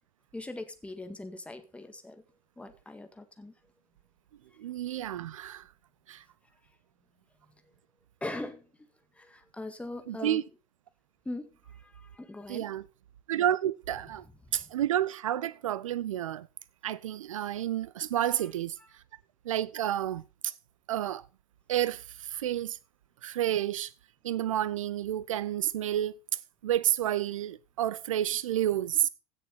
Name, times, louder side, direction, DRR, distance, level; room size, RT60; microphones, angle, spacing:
voice 1, 0.3-2.2 2.6-3.5 8.2-8.7 9.1-10.4 11.2-12.7 14.5-14.6 18.8-18.9, left 2 dB, 5° left, 1.8 m, -41 dB
voice 2, 4.6-5.7 6.1-6.2 10.1-10.4 12.5-12.9 13.3-14.2 14.5-16.5 16.8-19.0 19.4-20.5 20.9-21.2 21.7-22.8 23.2-23.9 24.2-26.1 26.6-29.1, right 11 dB, 65° right, 0.5 m, -30 dB
16.0 x 6.8 x 4.1 m
figure-of-eight pair, 75°, 18 cm